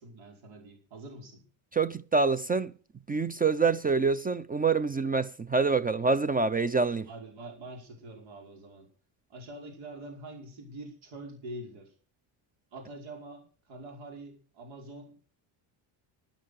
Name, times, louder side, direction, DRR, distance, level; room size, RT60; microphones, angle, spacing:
voice 1, 0.0-1.4 7.0-8.9 9.3-11.9 12.7-15.1, right 1 dB, 75° right, 5.2 m, -45 dB
voice 2, 1.7-2.7 3.1-7.1, right 4 dB, 20° right, 0.5 m, -26 dB
11.5 x 10.5 x 6.6 m
supercardioid pair, 85°, 48 cm